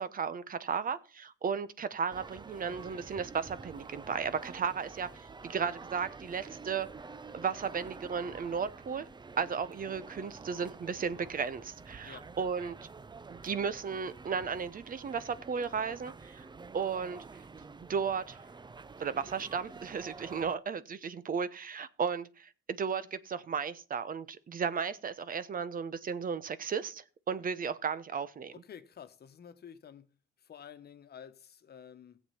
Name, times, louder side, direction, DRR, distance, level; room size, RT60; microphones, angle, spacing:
voice 1, 0.0-6.9 7.3-9.1 9.4-12.8 13.3-16.5 16.7-17.2 17.9-18.4 19.0-28.5, right 6 dB, 45° right, 0.9 m, -35 dB
sound 1, 2.1-20.6, right 4 dB, 20° right, 0.6 m, -49 dB
voice 2, 28.5-30.1 30.4-32.2, left 8 dB, 55° left, 1.2 m, -50 dB
16.0 x 7.4 x 5.8 m
cardioid pair, 90°, 20 cm